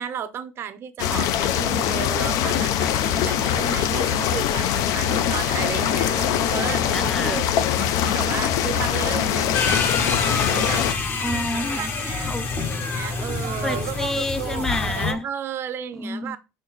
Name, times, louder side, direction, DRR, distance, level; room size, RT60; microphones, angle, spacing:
voice 1, 0.0-7.5 8.1-9.8 10.5-10.9 11.3-13.9 15.2-16.4, right 8 dB, 40° right, 0.6 m, -34 dB
sound 1, 1.0-10.9, left 10 dB, 65° left, 0.5 m, -23 dB
sound 2, 2.7-11.9 12.3-12.7 13.0-15.2, right 11 dB, 80° right, 0.9 m, -38 dB
voice 2, 6.9-7.4 11.2-11.9 12.2-12.4 13.6-15.2 16.0-16.4, left 2 dB, 5° left, 0.4 m, -29 dB
sound 3, 9.5-15.1, left 4 dB, 30° left, 0.8 m, -27 dB
5.7 x 4.5 x 3.9 m
cardioid pair, 165°, 6 cm